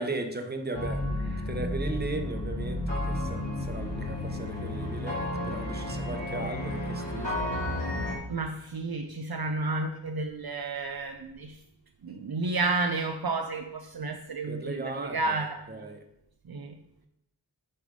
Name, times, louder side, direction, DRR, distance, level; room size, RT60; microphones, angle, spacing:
voice 1, 0.0-7.5 14.5-16.0, right 2 dB, 25° right, 0.9 m, -37 dB
sound 1, 0.7-8.1, left 1 dB, 90° left, 2.8 m, -32 dB
voice 2, 8.3-11.6 12.0-15.9 16.5-16.8, right 3 dB, 60° right, 0.6 m, -31 dB
8.1 x 3.4 x 5.2 m
wide cardioid pair, 45°, 43 cm